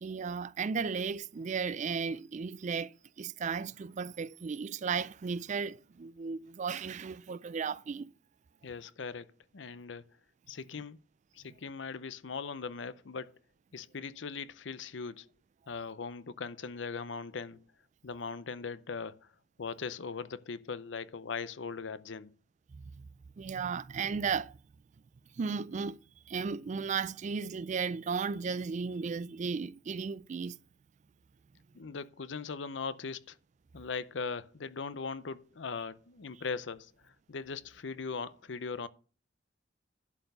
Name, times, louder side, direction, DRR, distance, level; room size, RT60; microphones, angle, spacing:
voice 1, 0.0-8.1 22.7-23.1 23.4-24.6 25.4-26.0 26.3-30.6, right 5 dB, 40° right, 0.3 m, -35 dB
voice 2, 8.6-9.3 9.5-10.0 10.5-11.0 11.3-13.3 13.7-15.3 15.7-17.6 18.0-19.3 19.6-22.3 31.7-33.4 33.7-38.9, left 5 dB, 70° left, 0.6 m, -39 dB
11.5 x 4.4 x 6.7 m
head